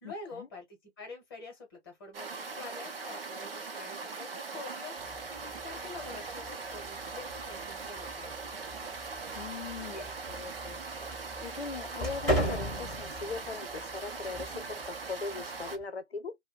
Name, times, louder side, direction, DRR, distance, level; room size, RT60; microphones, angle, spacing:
voice 1, 0.0-8.3, left 3 dB, 20° left, 1.0 m, -47 dB
sound 1, 2.1-15.8, right 4 dB, 55° right, 0.7 m, -41 dB
sound 2, 5.0-15.8, right 1 dB, 5° right, 0.5 m, -39 dB
voice 2, 9.3-10.8 11.4-16.4, left 4 dB, 60° left, 0.7 m, -40 dB
2.5 x 2.2 x 3.5 m
figure-of-eight pair, 150°, 35 cm